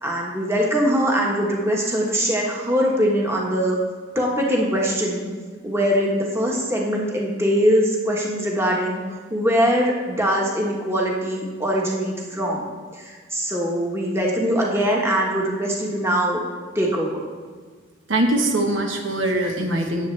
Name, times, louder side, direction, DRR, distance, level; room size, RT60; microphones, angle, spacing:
voice 1, 0.0-3.8 4.1-5.3 5.6-16.4 16.7-17.3, equal, 15° right, -2 dB, 1.3 m, -22 dB
voice 2, 18.1-20.1, right 1 dB, 70° right, 2 dB, 1.2 m, -22 dB
17.0 x 7.3 x 3.3 m, 1.5 s
head